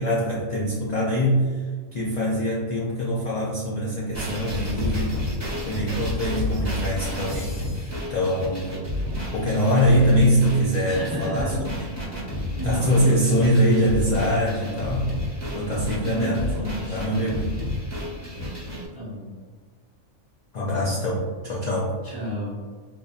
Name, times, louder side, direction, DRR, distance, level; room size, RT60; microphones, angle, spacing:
voice 1, 0.0-5.2 5.6-7.8 8.1-8.9 9.3-11.9 12.6-15.1 15.5-16.5 16.9-17.5 20.5-22.0, equal, 80° left, -5 dB, 0.4 m, -23 dB
sound 1, 4.1-18.9, left 1 dB, 10° left, 1.0 m, -30 dB
voice 2, 10.9-11.6 12.6-13.7 16.0-17.0 18.9-19.3 22.0-22.6, equal, 25° right, -7 dB, 0.4 m, -31 dB
4.1 x 2.6 x 2.4 m, 1.5 s
omnidirectional pair, 1.4 m